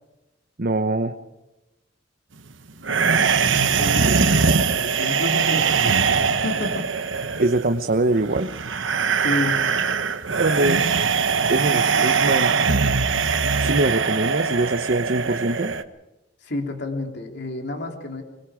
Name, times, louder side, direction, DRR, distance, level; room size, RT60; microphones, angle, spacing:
voice 1, 0.6-1.2 4.0-4.2 7.4-8.5 10.4-10.9 11.5-12.5 13.6-15.7, right 2 dB, 50° right, 7 dB, 1.0 m, -23 dB
voice 2, 2.8-7.0 9.2-9.7 11.7-12.0 16.4-18.2, left 2 dB, 65° left, 3 dB, 3.2 m, -31 dB
sound 1, 2.8-15.8, right 5 dB, 85° right, 1.1 m, -21 dB
25.5 x 22.0 x 5.1 m, 1.0 s
head